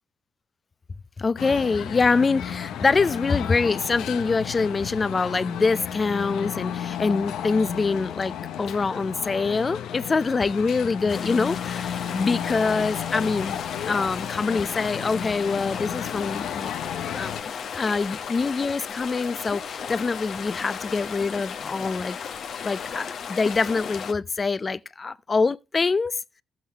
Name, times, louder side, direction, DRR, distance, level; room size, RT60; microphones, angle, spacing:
voice 1, 1.2-13.6 13.8-16.7 17.1-17.4 17.7-22.2 22.6-26.2, left 4 dB, 30° left, 0.5 m, -25 dB
sound 1, 1.4-17.4, left 9 dB, 85° left, 0.7 m, -33 dB
sound 2, 11.1-24.1, left 7 dB, 65° left, 1.1 m, -35 dB
14.0 x 7.9 x 3.4 m
cardioid pair, 90°, 0 cm